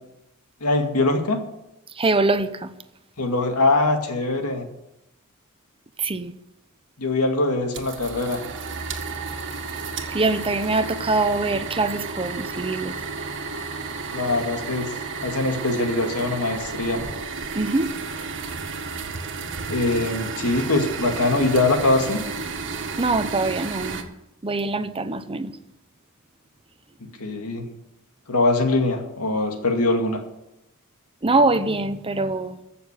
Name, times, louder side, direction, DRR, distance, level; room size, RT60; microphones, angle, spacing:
voice 1, 0.6-1.4 3.2-4.7 7.0-8.4 14.1-14.9 15.2-17.0 19.7-22.2 27.2-27.7 28.3-30.2, left 2 dB, 90° left, 2.2 m, -22 dB
voice 2, 1.9-2.7 6.0-6.3 10.1-12.9 17.5-17.9 23.0-24.0 24.4-25.5 31.2-32.6, right 3 dB, 25° right, 0.8 m, -23 dB
sound 1, 7.7-24.0, right 4 dB, 60° right, 1.7 m, -32 dB
15.0 x 6.9 x 8.3 m
head